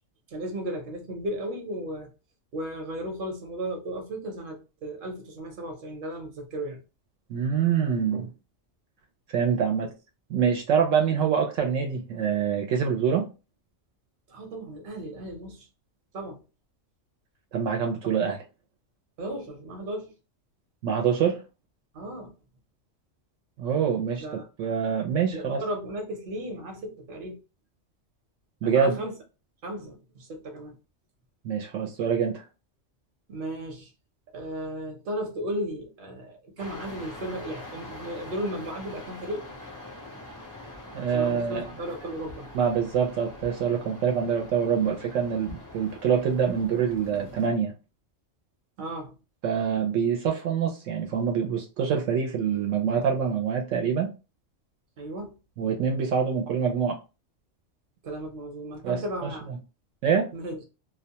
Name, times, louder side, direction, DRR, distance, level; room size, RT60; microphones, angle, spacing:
voice 1, 0.3-2.1 2.5-6.8 14.3-15.7 16.1-16.4 18.0-18.2 19.2-20.1 21.9-22.3 24.2-24.4 25.3-27.4 28.6-29.2 29.6-30.8 33.3-33.9 34.3-39.5 41.1-42.5 48.8-49.2 55.0-55.3 58.0-59.5 60.3-60.6, right 1 dB, 50° right, 0.9 m, -35 dB
voice 2, 7.3-8.3 9.3-9.9 10.3-13.3 17.5-18.4 20.8-21.4 23.6-24.2 24.6-25.6 28.6-29.0 31.4-32.4 40.9-41.6 42.5-47.7 49.4-54.1 55.6-57.0 58.8-59.3 60.0-60.3, right 7 dB, 75° right, 0.9 m, -25 dB
sound 1, 36.6-47.5, left 2 dB, 30° left, 0.3 m, -44 dB
2.3 x 2.2 x 2.7 m
omnidirectional pair, 1.3 m